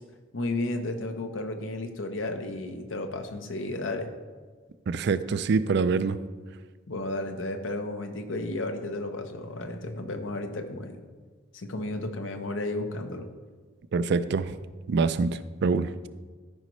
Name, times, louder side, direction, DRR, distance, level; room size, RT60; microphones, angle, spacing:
voice 1, 0.3-4.1 6.9-11.0 11.5-13.3, left 2 dB, 80° left, 6 dB, 0.9 m, -33 dB
voice 2, 4.9-6.2 13.9-14.6 14.9-16.1, right 4 dB, 60° right, 13 dB, 0.4 m, -25 dB
13.5 x 5.2 x 3.1 m, 1.4 s
head